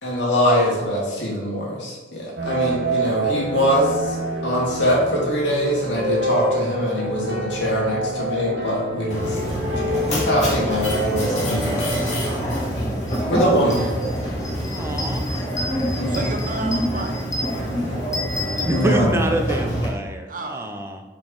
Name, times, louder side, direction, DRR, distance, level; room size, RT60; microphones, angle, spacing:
voice 1, 0.0-4.2 4.4-9.6 9.9-12.1 13.3-13.9 16.0-16.3 18.7-19.1, equal, 80° left, -3 dB, 2.3 m, -23 dB
sound 1, 2.4-12.2, equal, 80° right, 1.7 m, -27 dB
Mechanisms, 9.1-19.9, equal, 40° left, 2.0 m, -26 dB
sound 2, 13.1-13.2 13.6-19.4, left 1 dB, 20° left, 1.0 m, -33 dB
voice 2, 14.6-15.3 16.1-16.4 18.6-21.0, right 1 dB, 15° right, 4 dB, 0.7 m, -26 dB
voice 3, 16.1-17.8 20.3-20.8, right 3 dB, 50° right, 5 dB, 0.8 m, -33 dB
5.5 x 5.0 x 5.4 m, 1.2 s
head